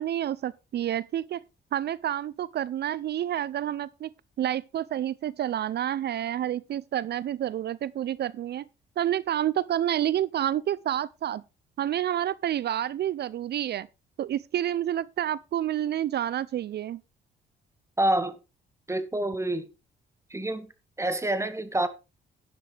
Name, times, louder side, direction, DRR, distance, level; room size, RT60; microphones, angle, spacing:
voice 1, 0.0-1.4 1.7-4.1 4.4-8.6 9.0-11.4 11.8-13.9 14.2-17.0, right 11 dB, 55° right, 0.5 m, -29 dB
voice 2, 18.0-18.4 18.9-19.7 20.3-20.7 21.0-21.9, right 1 dB, 15° right, 1.7 m, -27 dB
11.5 x 10.0 x 3.3 m
cardioid pair, 90°, 20 cm